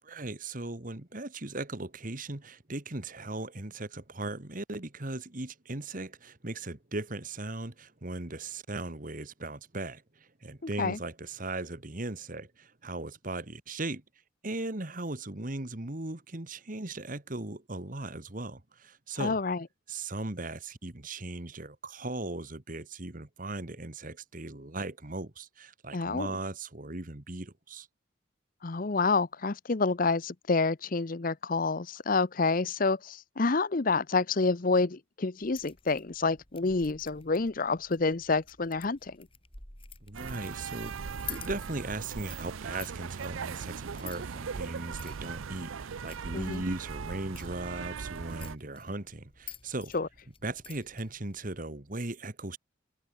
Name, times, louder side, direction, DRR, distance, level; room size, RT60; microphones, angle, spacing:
voice 1, 0.0-10.0 10.4-14.0 14.4-19.4 19.9-27.9 40.0-49.9 50.4-52.6, right 2 dB, 40° right, 1.7 m, -38 dB
voice 2, 10.6-11.0 19.2-19.6 25.9-26.4 28.6-39.2 46.3-46.6 49.9-50.1, left 3 dB, 45° left, 0.7 m, -28 dB
sound 1, 35.4-51.6, left 8 dB, 25° left, 6.8 m, -51 dB
sound 2, 40.1-48.6, right 6 dB, 85° right, 0.6 m, -39 dB
head